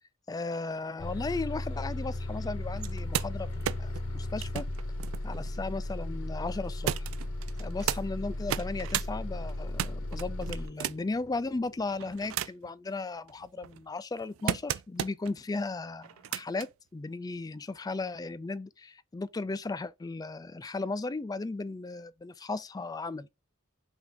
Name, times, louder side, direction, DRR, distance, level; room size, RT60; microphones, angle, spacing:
voice 1, 0.3-4.6 5.2-7.0 7.6-23.3, left 3 dB, 20° left, 0.3 m, -36 dB
Bus, 1.0-10.7, left 1 dB, 90° left, 1.1 m, -36 dB
sound 1, 2.8-6.1 6.9-8.0 8.4-9.1 9.5-11.2 11.8-12.7 13.3-15.3 16.0-16.7 17.8-17.9, right 10 dB, 70° right, 0.3 m, -35 dB
sound 2, 8.2-12.5, left 2 dB, 60° left, 0.8 m, -54 dB
5.8 x 2.5 x 3.6 m
head